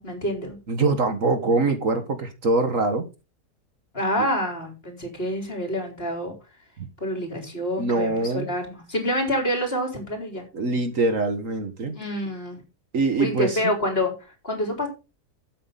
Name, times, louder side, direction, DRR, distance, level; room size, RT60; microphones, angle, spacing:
voice 1, 0.0-0.6 3.9-6.3 7.0-10.5 11.9-12.6 13.2-14.9, equal, 35° left, 4.1 m, -27 dB
voice 2, 0.7-3.1 6.8-6.9 7.8-8.5 10.5-11.9 12.9-13.6, right 3 dB, 55° right, 1.8 m, -23 dB
12.5 x 8.7 x 4.0 m
omnidirectional pair, 1.7 m